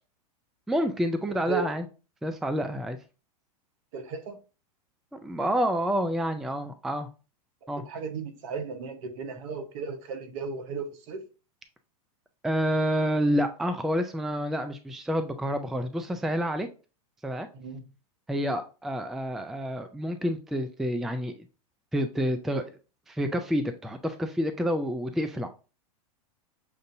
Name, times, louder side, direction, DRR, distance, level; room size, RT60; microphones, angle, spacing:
voice 1, 0.7-1.9 2.2-3.0 5.1-7.1 7.7-7.8 12.4-16.7 17.2-17.5 18.3-21.3 21.9-22.7 23.1-25.5, equal, ahead, 0.3 m, -28 dB
voice 2, 3.9-4.4 7.8-11.2 17.5-17.8, right 6 dB, 60° right, 1.0 m, -35 dB
6.6 x 2.6 x 2.6 m
hypercardioid pair, 110°, 19 cm